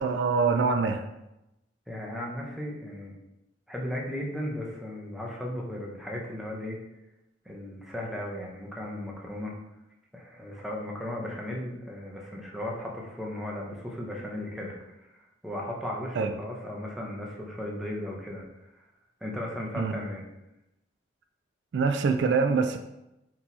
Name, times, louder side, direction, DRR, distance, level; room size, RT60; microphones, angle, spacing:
voice 1, 0.0-1.1 16.1-16.3 19.8-20.0 21.7-22.8, right 5 dB, 65° right, 7 dB, 0.3 m, -24 dB
voice 2, 1.9-3.1 3.7-6.8 7.5-9.6 10.1-18.4 19.2-20.2, left 1 dB, ahead, -2 dB, 0.7 m, -36 dB
4.5 x 2.8 x 4.0 m, 0.90 s
head